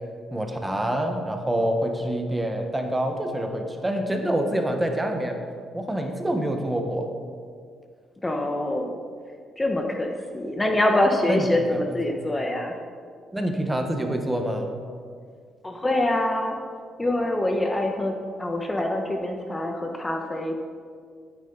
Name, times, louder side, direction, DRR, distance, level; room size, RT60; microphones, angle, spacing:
voice 1, 0.3-5.4 5.7-7.1 11.3-11.8 12.1-12.2 13.3-14.8, right 1 dB, 10° right, 4 dB, 1.3 m, -26 dB
voice 2, 8.2-8.9 9.6-12.7 15.6-16.6 17.0-20.6, left 1 dB, 15° left, 3 dB, 1.1 m, -25 dB
12.5 x 9.7 x 4.0 m, 2.1 s
cardioid pair, 90°, 0 cm